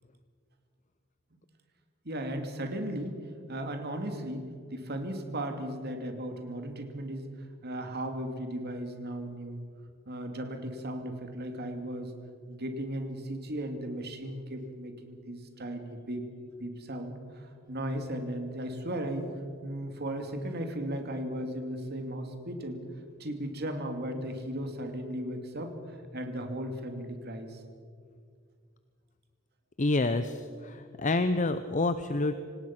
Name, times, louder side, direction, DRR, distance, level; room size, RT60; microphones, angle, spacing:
voice 1, 2.0-7.3 7.6-9.6 10.1-12.1 12.5-16.3 16.6-19.3 19.6-22.8 23.2-27.6, right 1 dB, 50° right, 5 dB, 2.5 m, -36 dB
voice 2, 29.8-32.4, left 2 dB, 35° left, 10 dB, 0.7 m, -28 dB
26.0 x 18.5 x 6.0 m, 2.1 s
head